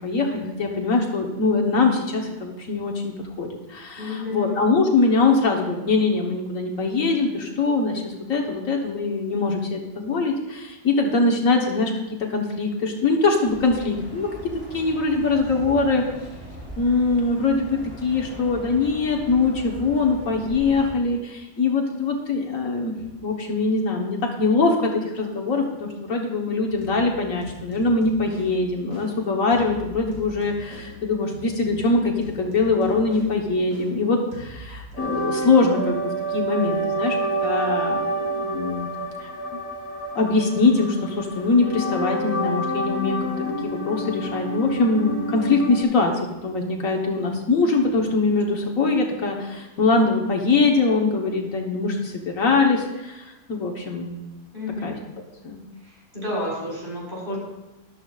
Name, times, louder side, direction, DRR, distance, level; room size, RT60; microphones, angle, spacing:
voice 1, 0.0-11.9 12.3-14.3 14.7-16.0 16.8-22.9 23.2-37.2 37.4-38.9 39.2-39.3 40.1-46.1 46.4-54.2 54.8-54.9 55.4-55.6, left 3 dB, 65° left, 1 dB, 1.6 m, -22 dB
voice 2, 4.0-4.6 54.5-55.0 55.8-57.4, left 2 dB, 35° right, -6 dB, 4.2 m, -31 dB
sound 1, 13.4-20.9, equal, 10° right, 4.3 m, -40 dB
sound 2, 26.7-34.9, right 2 dB, 75° right, 2.4 m, -42 dB
sound 3, 35.0-45.8, right 1 dB, 85° left, 2.2 m, -28 dB
13.5 x 11.5 x 2.4 m, 1.0 s
omnidirectional pair, 1.5 m